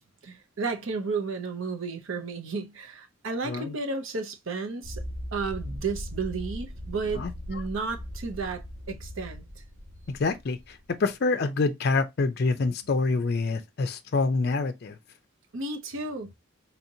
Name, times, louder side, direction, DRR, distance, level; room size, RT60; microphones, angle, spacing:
voice 1, 0.2-5.0 5.3-9.5 15.5-16.3, right 4 dB, 70° right, 0.7 m, -33 dB
sound 1, 4.8-11.0, equal, 40° right, 2.0 m, -39 dB
voice 2, 10.1-14.9, left 3 dB, 50° left, 0.4 m, -26 dB
4.2 x 2.9 x 2.6 m
head